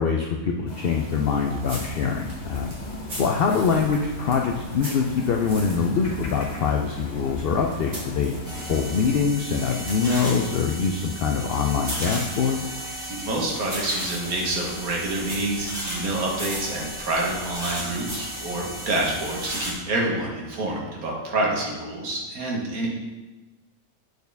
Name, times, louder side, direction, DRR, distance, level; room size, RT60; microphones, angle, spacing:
voice 1, 0.0-2.7 3.2-8.3 8.7-12.7, left 5 dB, 75° left, 1 dB, 0.5 m, -24 dB
sound 1, 0.7-9.3, left 1 dB, 35° left, 1.1 m, -38 dB
sound 2, 1.6-9.0 9.3-19.6, right 1 dB, 50° right, 2.0 m, -41 dB
sound 3, 8.4-19.7, equal, 5° right, 1.7 m, -35 dB
voice 2, 13.1-22.9, right 2 dB, 80° right, -2 dB, 1.8 m, -27 dB
8.0 x 4.4 x 3.4 m, 1.2 s
omnidirectional pair, 1.5 m